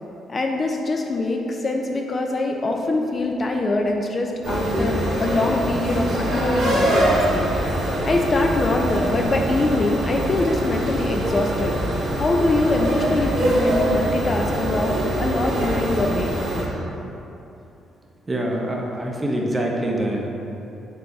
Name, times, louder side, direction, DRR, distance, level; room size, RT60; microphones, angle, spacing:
voice 1, 0.3-7.5 8.0-11.8 12.1-16.4, left 2 dB, 35° left, 2 dB, 0.3 m, -23 dB
sound 1, 4.4-16.6, right 1 dB, 75° right, 1.1 m, -23 dB
voice 2, 18.3-20.3, right 1 dB, 25° right, -1 dB, 0.6 m, -25 dB
3.8 x 3.2 x 3.4 m, 2.9 s
cardioid pair, 90°, 0 cm